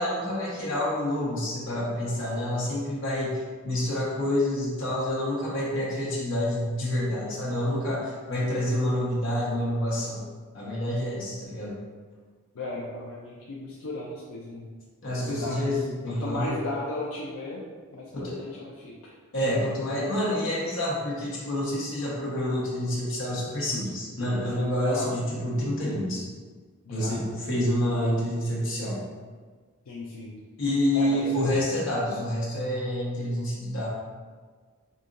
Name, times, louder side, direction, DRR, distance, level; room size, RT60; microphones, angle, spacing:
voice 1, 0.0-10.2 10.5-11.8 15.0-16.6 18.1-18.5 19.3-26.2 26.9-29.0 30.6-33.9, left 1 dB, 65° left, -6 dB, 1.1 m, -28 dB
voice 2, 12.5-14.7 15.1-15.7 16.1-17.6 17.9-19.1 24.8-25.2 26.8-27.2 29.9-30.3 30.9-31.4, left 2 dB, 85° left, -4 dB, 0.5 m, -36 dB
4.9 x 2.7 x 2.5 m, 1.5 s
head